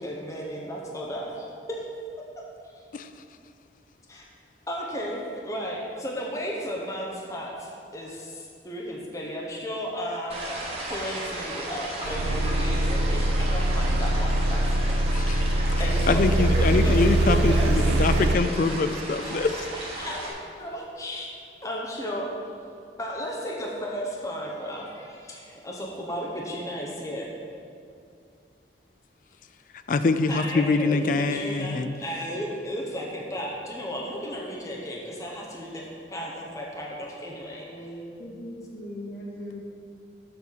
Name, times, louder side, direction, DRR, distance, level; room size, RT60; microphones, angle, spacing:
voice 1, 0.0-1.9 2.2-2.5 4.1-4.2 4.7-10.4 10.9-14.8 15.8-17.8 19.2-22.3 23.0-27.3 30.3-37.9, equal, 20° left, -2 dB, 0.8 m, -34 dB
sound 1, 10.3-20.3, right 1 dB, 35° right, 1.3 m, -35 dB
sound 2, 12.0-18.4, right 1 dB, 75° right, 0.4 m, -23 dB
voice 2, 15.1-15.4 16.1-19.5 29.9-31.9, left 3 dB, 50° left, 10 dB, 0.4 m, -24 dB
voice 3, 37.5-39.6, equal, 65° left, -6 dB, 2.1 m, -39 dB
6.9 x 5.4 x 6.3 m, 2.4 s
head